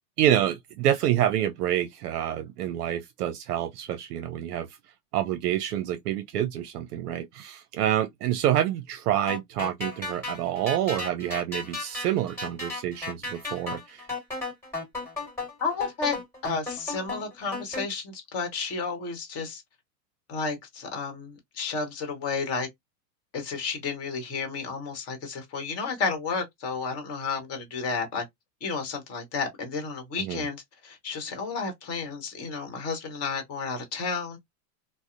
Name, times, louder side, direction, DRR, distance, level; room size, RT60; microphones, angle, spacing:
voice 1, 0.2-4.8 5.1-14.1 30.2-30.4, right 11 dB, 70° right, 0.6 m, -27 dB
sound 1, 9.3-17.8, left 2 dB, 5° left, 1.7 m, -35 dB
voice 2, 15.6-19.6 20.3-22.7 23.3-28.2 28.6-34.4, left 4 dB, 30° left, 1.0 m, -32 dB
2.7 x 2.0 x 2.4 m
hypercardioid pair, 130°, 48 cm